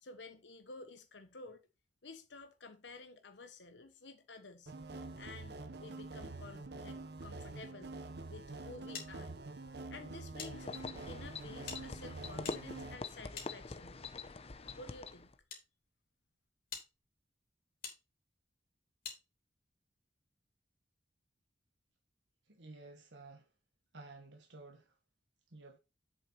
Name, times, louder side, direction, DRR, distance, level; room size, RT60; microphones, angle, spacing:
voice 1, 0.0-1.6 2.0-4.7 5.2-7.9 8.3-9.4 9.9-10.7 11.1-14.1 14.8-15.3, left 3 dB, 80° left, 1.2 m, -52 dB
sound 1, 4.7-13.0, right 3 dB, 65° right, 0.9 m, -46 dB
sound 2, 8.9-10.5 10.8-10.9 11.6-14.1 14.9-15.6 16.2-16.3 16.7-16.9 17.8-18.0 19.0-19.2, left 6 dB, 55° left, 3.4 m, -48 dB
sound 3, 10.5-15.3, left 3 dB, 35° left, 0.7 m, -45 dB
voice 2, 22.5-23.4 23.9-24.8 25.5-25.8, right 2 dB, 85° right, 1.3 m, -53 dB
8.2 x 6.6 x 4.2 m
head